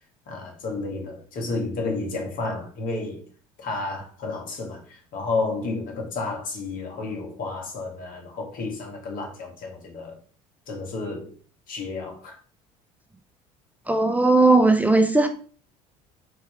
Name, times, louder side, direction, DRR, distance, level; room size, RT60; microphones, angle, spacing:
voice 1, 0.3-3.2 3.6-10.2 10.7-11.3 11.7-12.4, left 3 dB, 60° left, 2.3 m, -31 dB
voice 2, 13.9-15.3, right 2 dB, 10° right, 0.7 m, -17 dB
4.6 x 4.5 x 5.2 m
supercardioid pair, 85°, 16 cm